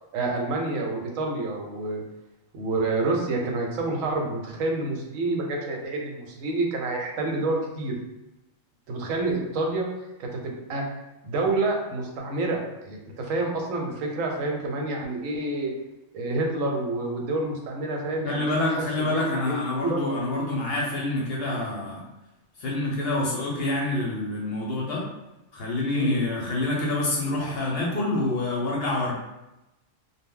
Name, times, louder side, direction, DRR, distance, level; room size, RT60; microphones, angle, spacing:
voice 1, 0.1-2.0 2.5-7.9 8.9-9.9 10.2-10.8 11.2-15.7 16.1-18.8 19.1-19.6 19.8-20.0 25.9-26.2, right 2 dB, 85° right, 1 dB, 1.0 m, -28 dB
voice 2, 18.2-22.0 22.6-25.0 25.5-29.1, left 2 dB, 60° left, -3 dB, 0.7 m, -27 dB
2.1 x 2.1 x 3.6 m, 0.96 s
omnidirectional pair, 1.4 m